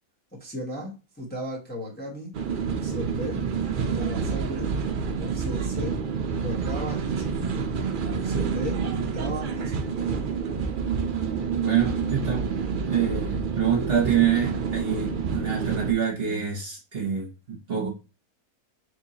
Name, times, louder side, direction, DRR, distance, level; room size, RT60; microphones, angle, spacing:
voice 1, 0.3-2.4 2.8-3.4 3.8-4.7 5.2-6.0 6.4-7.5 8.1-10.0, equal, 10° left, 1.0 m, -36 dB
sound 1, 2.3-15.9, right 5 dB, 70° right, 0.4 m, -28 dB
voice 2, 11.6-12.5 12.9-17.9, right 8 dB, 45° right, 1.2 m, -26 dB
4.4 x 3.4 x 2.7 m
omnidirectional pair, 1.6 m